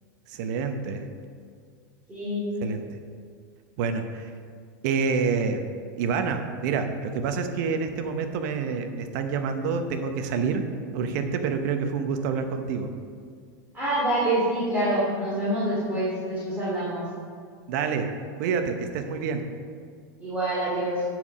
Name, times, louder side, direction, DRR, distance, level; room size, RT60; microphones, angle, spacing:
voice 1, 0.3-1.1 2.6-2.8 3.8-4.3 4.8-5.7 6.0-10.6 10.9-12.9 17.7-18.1 18.4-19.5, right 5 dB, 65° right, 7 dB, 0.8 m, -27 dB
voice 2, 2.1-2.5 13.7-17.1 20.2-21.0, right 1 dB, 15° right, -10 dB, 2.5 m, -26 dB
11.0 x 4.7 x 5.4 m, 2.1 s
supercardioid pair, 135°, 11 cm